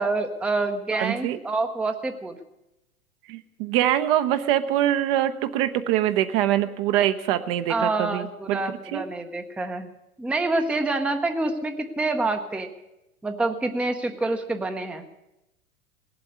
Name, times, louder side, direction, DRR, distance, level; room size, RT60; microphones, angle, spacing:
voice 1, 0.0-2.4 7.7-9.9 10.2-12.7 13.2-15.0, right 2 dB, 5° right, 6 dB, 0.8 m, -27 dB
voice 2, 0.9-1.4 3.3-8.6 8.9-9.0, right 12 dB, 40° right, 10 dB, 0.9 m, -24 dB
18.5 x 7.9 x 9.3 m, 0.91 s
figure-of-eight pair, 100°, 42 cm